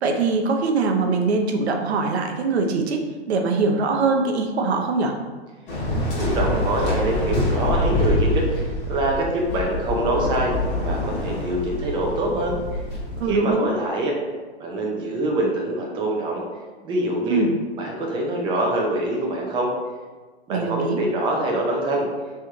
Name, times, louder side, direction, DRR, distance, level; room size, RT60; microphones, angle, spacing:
voice 1, 0.0-3.0 3.3-5.1 13.2-13.7 17.3-17.6 20.5-21.0, right 3 dB, 70° right, 3 dB, 0.8 m, -22 dB
Waves surf, 5.7-13.3, left 1 dB, 35° left, 1.3 m, -25 dB
voice 2, 6.2-10.5 10.8-12.6 13.3-14.1 14.6-16.4 16.8-17.5 17.8-19.7 20.5-22.1, right 1 dB, 15° right, -1 dB, 0.5 m, -24 dB
3.3 x 3.1 x 3.6 m, 1.4 s
hypercardioid pair, 125°, 34 cm